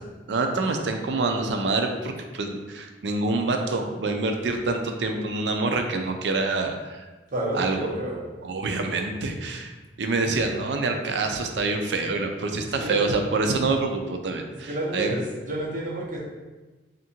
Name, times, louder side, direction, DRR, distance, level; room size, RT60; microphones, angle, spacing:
voice 1, 0.3-7.0 7.5-7.9 8.4-9.7 10.0-15.1, right 3 dB, 80° right, 4 dB, 0.5 m, -26 dB
voice 2, 7.3-8.2 12.6-13.0 14.5-16.2, right 1 dB, 50° right, -4 dB, 1.0 m, -30 dB
3.6 x 2.5 x 4.3 m, 1.2 s
head